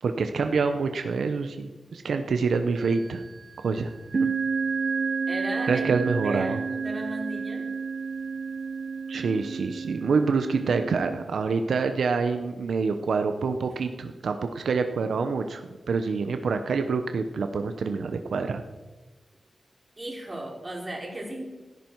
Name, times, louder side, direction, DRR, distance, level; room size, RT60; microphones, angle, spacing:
voice 1, 0.0-3.2 3.6-3.9 4.2-4.3 5.7-6.6 9.1-18.6, right 4 dB, 85° right, 7 dB, 0.9 m, -26 dB
sound 1, 2.8-3.3 4.1-11.2, right 5 dB, 55° right, 0.8 m, -30 dB
voice 2, 5.3-5.9 6.2-7.7 20.0-21.4, right 1 dB, 25° right, -1 dB, 4.1 m, -35 dB
16.0 x 13.5 x 4.7 m, 1.2 s
wide cardioid pair, 105°, 0 cm